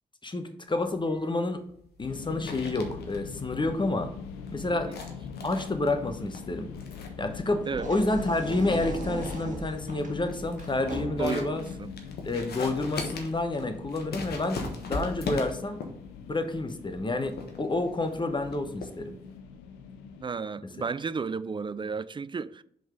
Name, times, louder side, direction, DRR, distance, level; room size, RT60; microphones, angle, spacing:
voice 1, 0.2-1.6 2.0-4.1 4.5-4.9 5.4-6.7 7.2-11.6 12.2-14.6 14.9-15.8 16.2-19.2, left 2 dB, 25° left, 1.0 m, -29 dB
sound 1, 0.7-19.4, left 3 dB, 70° left, 1.1 m, -41 dB
sound 2, 2.0-20.3, left 6 dB, 90° left, 0.5 m, -43 dB
sound 3, 7.6-11.6, right 3 dB, 45° right, 1.6 m, -38 dB
voice 2, 11.2-11.9 20.2-22.6, right 5 dB, 30° right, 0.3 m, -33 dB
5.1 x 3.9 x 5.1 m
hypercardioid pair, 40°, 17 cm